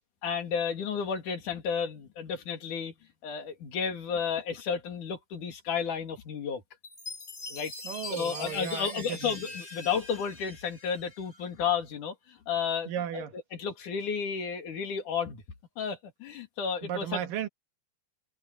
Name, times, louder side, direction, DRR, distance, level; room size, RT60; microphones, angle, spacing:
voice 1, 0.2-2.9 3.2-6.6 7.5-7.7 8.1-13.2 13.5-15.4 15.8-17.2, left 6 dB, 65° left, 3.9 m, -32 dB
Chime, 6.8-11.4, left 2 dB, 20° left, 6.6 m, -43 dB
voice 2, 7.8-9.4 12.9-13.4 16.8-17.5, right 9 dB, 85° right, 3.2 m, -35 dB
omnidirectional pair, 3.8 m